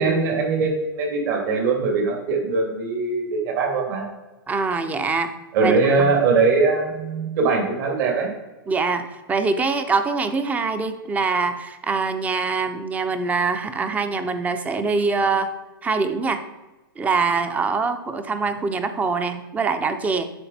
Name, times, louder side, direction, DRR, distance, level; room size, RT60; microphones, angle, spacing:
voice 1, 0.0-4.0 5.5-8.3, right 4 dB, 55° right, 1 dB, 3.2 m, -21 dB
voice 2, 4.5-5.3 5.6-6.2 8.7-15.5 15.8-16.4 17.0-20.3, right 4 dB, 10° right, 10 dB, 0.6 m, -24 dB
9.8 x 6.6 x 4.4 m, 1.1 s
hypercardioid pair, 145°, 12 cm